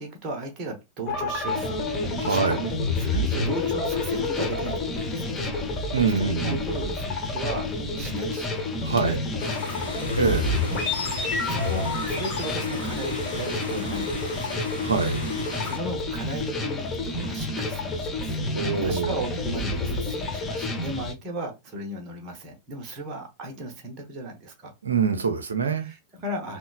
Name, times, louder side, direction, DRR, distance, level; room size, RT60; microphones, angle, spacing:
voice 1, 0.0-1.8 2.2-2.7 3.0-5.7 6.2-7.7 8.0-9.2 9.5-9.9 11.1-14.6 15.4-18.4 18.8-24.7 25.8-26.6, right 2 dB, 30° right, 0.8 m, -36 dB
sound 1, 1.1-20.9, left 2 dB, 35° left, 1.0 m, -30 dB
sound 2, 1.4-21.1, left 3 dB, 20° left, 0.5 m, -34 dB
voice 2, 2.2-2.6 5.9-6.6 8.8-9.2 10.1-10.6 14.8-15.2 18.5-19.2 24.8-25.9, right 5 dB, 70° right, 0.5 m, -24 dB
sound 3, 9.4-15.8, left 2 dB, 70° left, 0.7 m, -36 dB
2.9 x 2.0 x 2.3 m
figure-of-eight pair, 90°, 0 cm